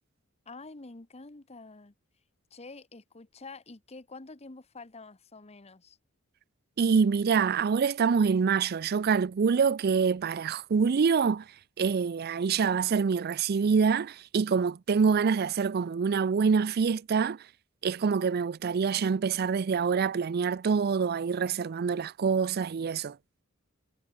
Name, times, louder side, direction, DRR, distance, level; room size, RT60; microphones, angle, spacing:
voice 1, 0.5-1.9 2.5-6.0, left 3 dB, 30° left, 1.1 m, -47 dB
voice 2, 6.8-11.5 11.8-17.4 17.8-23.2, right 5 dB, 50° right, 0.4 m, -26 dB
head